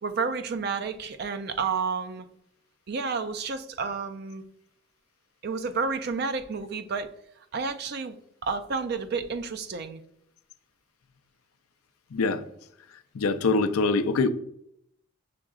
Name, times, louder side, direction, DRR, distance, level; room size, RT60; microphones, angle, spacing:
voice 1, 0.0-2.2 2.9-4.4 5.4-7.1 7.5-8.2 8.4-10.0, right 5 dB, 50° right, 10 dB, 0.4 m, -30 dB
voice 2, 12.1-12.5 13.1-14.3, left 3 dB, 85° left, 10 dB, 0.4 m, -24 dB
6.0 x 3.7 x 2.3 m, 0.72 s
head